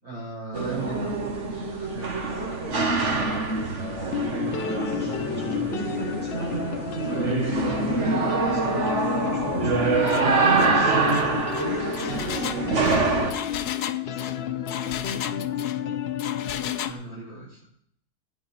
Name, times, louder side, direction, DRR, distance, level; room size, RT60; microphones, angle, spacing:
voice 1, 0.0-1.3 1.7-2.6 3.3-3.5 16.8-17.7, right 2 dB, 70° right, -5 dB, 6.3 m, -38 dB
sound 1, 0.5-13.3, right 3 dB, 50° right, 1.7 m, -25 dB
voice 2, 2.3-3.3 4.5-16.3, left 2 dB, 5° right, -5 dB, 6.0 m, -41 dB
sound 2, 4.1-16.9, left 9 dB, 55° left, 0.7 m, -31 dB
Engine, 10.1-10.3 10.6-10.8 11.1-15.8 16.2-17.0, left 9 dB, 85° left, 1.2 m, -35 dB
15.0 x 9.6 x 4.4 m, 0.69 s
omnidirectional pair, 1.6 m